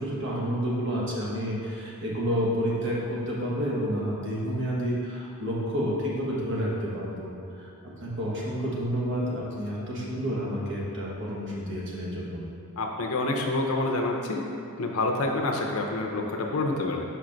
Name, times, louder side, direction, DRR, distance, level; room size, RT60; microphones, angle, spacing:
voice 1, 0.0-7.3 7.6-7.7 8.0-12.4, equal, 55° right, -5 dB, 1.2 m, -29 dB
voice 2, 12.8-14.4 14.8-17.0, left 2 dB, 65° left, 1 dB, 0.7 m, -27 dB
5.7 x 4.5 x 3.9 m, 2.6 s
head